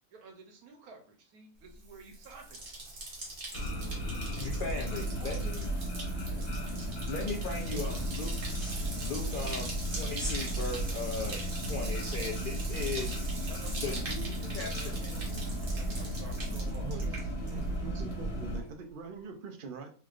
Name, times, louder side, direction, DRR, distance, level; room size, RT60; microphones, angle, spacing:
voice 1, 0.1-2.7 4.8-5.4 6.4-6.6 13.0-13.1 13.5-17.9, right 4 dB, 85° right, 3 dB, 1.3 m, -52 dB
Bathtub (filling or washing), 1.7-17.8 18.1-18.6, right 2 dB, 40° right, 1.0 m, -43 dB
sound 1, 3.5-18.6, right 1 dB, 50° left, 1.3 m, -35 dB
voice 2, 4.4-5.7 7.1-8.4 9.0-13.1 13.8-15.1, left 4 dB, 70° left, 2 dB, 0.4 m, -38 dB
Crying with mucus, 6.9-16.6, left 1 dB, ahead, 0.4 m, -52 dB
voice 3, 16.8-19.9, right 4 dB, 65° right, 4 dB, 0.5 m, -43 dB
3.7 x 3.1 x 2.4 m, 0.42 s
omnidirectional pair, 1.5 m